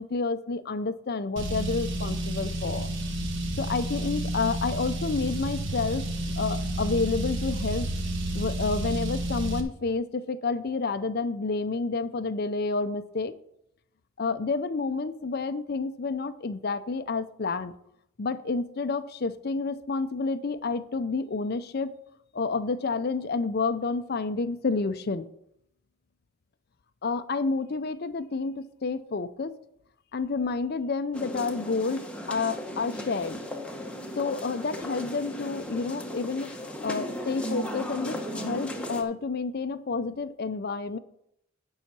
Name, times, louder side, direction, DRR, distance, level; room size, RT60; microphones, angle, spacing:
voice 1, 0.0-2.9 3.6-6.1 6.4-7.9 8.3-13.3 14.2-17.7 18.2-21.9 22.3-25.3 27.0-29.5 30.1-33.4 34.2-41.0, left 4 dB, 45° left, 11 dB, 0.5 m, -29 dB
Car, 1.4-9.6, right 1 dB, 55° right, 1.3 m, -30 dB
sound 1, 31.1-39.0, equal, 5° left, 0.9 m, -36 dB
10.0 x 5.6 x 6.1 m, 0.75 s
head